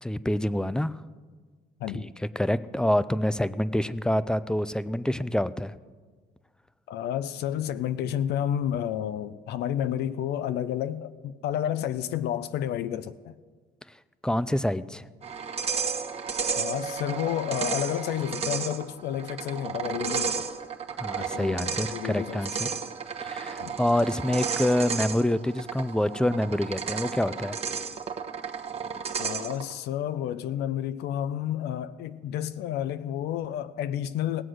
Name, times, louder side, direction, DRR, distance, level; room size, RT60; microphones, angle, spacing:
voice 1, 0.0-1.0 1.9-2.1 2.4-5.7 14.2-15.0 21.0-22.7 23.2-27.6, left 1 dB, 5° left, 0.4 m, -26 dB
voice 2, 1.8-2.1 6.9-13.3 16.5-20.5 21.2-22.7 23.6-23.8 29.2-34.4, left 10 dB, 75° left, 0.6 m, -31 dB
sound 1, 15.2-29.7, right 6 dB, 35° right, 1.1 m, -33 dB
17.5 x 7.7 x 6.3 m
cardioid pair, 110°, 17 cm